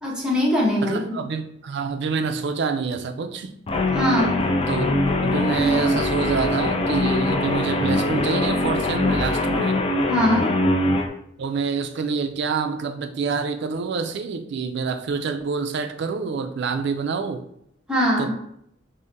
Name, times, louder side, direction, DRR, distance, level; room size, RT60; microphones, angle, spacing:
voice 1, 0.0-1.0 3.9-4.4 10.1-10.5 17.9-18.3, left 1 dB, 5° right, -5 dB, 0.9 m, -21 dB
voice 2, 0.8-3.5 4.7-4.9 5.2-9.8 11.4-17.4 18.2-18.3, right 5 dB, 65° right, 8 dB, 0.4 m, -27 dB
Guitar, 3.7-11.1, left 1 dB, 30° left, 0.3 m, -22 dB
3.6 x 2.0 x 4.0 m, 0.72 s
head